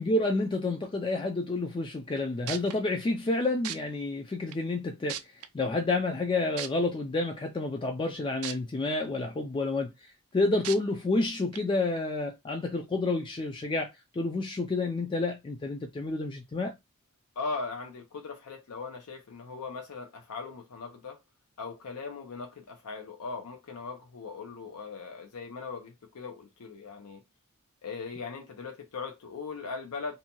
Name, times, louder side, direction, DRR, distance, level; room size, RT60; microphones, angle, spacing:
voice 1, 0.0-5.2 5.5-16.7, left 2 dB, 20° left, 0.3 m, -29 dB
sound 1, 2.1-2.2 2.5-2.7 3.6-3.8 4.5-4.6 5.1-5.5 6.6-6.7 8.4-8.5 9.0-9.1 10.6-10.8 11.5-11.6, right 11 dB, 75° right, 0.4 m, -35 dB
voice 2, 17.4-21.2 21.6-27.2 27.8-30.2, left 4 dB, 85° left, 0.5 m, -39 dB
2.7 x 2.2 x 2.8 m
head